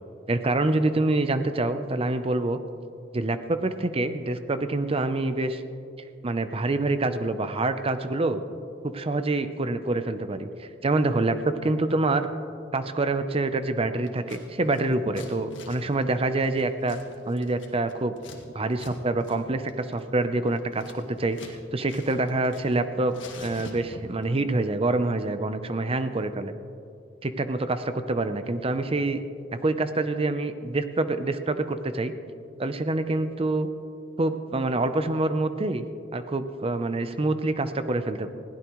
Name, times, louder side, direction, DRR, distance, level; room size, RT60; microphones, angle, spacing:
voice 1, 0.3-2.6 3.1-5.6 6.2-8.4 8.8-12.3 12.7-17.0 17.3-18.1 18.5-26.5 27.2-29.2 29.6-32.1 32.6-33.7 34.2-35.8 36.1-38.3, right 2 dB, 30° right, 10 dB, 0.6 m, -26 dB
Scissors, 14.1-14.4 14.7-18.4 18.7-18.9 19.2-19.4 19.7-21.6 21.9-22.8 23.1-24.2, left 3 dB, 70° left, 1.9 m, -46 dB
20.5 x 16.0 x 3.1 m, 2.5 s
head